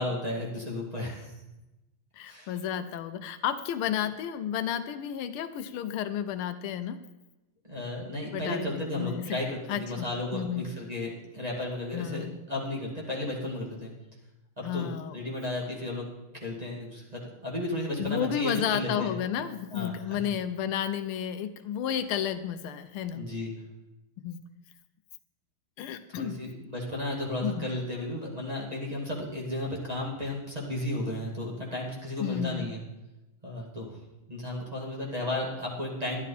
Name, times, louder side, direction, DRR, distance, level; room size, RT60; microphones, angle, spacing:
voice 1, 0.0-1.3 2.3-2.5 7.7-13.9 14.7-16.1 16.3-19.1 19.7-19.9 23.1-23.5 26.2-32.8 33.4-33.9 34.3-36.2, left 1 dB, 20° right, -3 dB, 2.1 m, -34 dB
voice 2, 2.1-7.0 8.3-9.4 9.7-10.1 10.3-10.6 11.9-12.3 14.6-15.2 18.0-23.3 24.2-24.4 25.8-26.4 27.4-27.6 32.2-32.7, left 9 dB, 85° left, 11 dB, 1.6 m, -32 dB
11.5 x 11.0 x 4.2 m, 1.0 s
omnidirectional pair, 2.3 m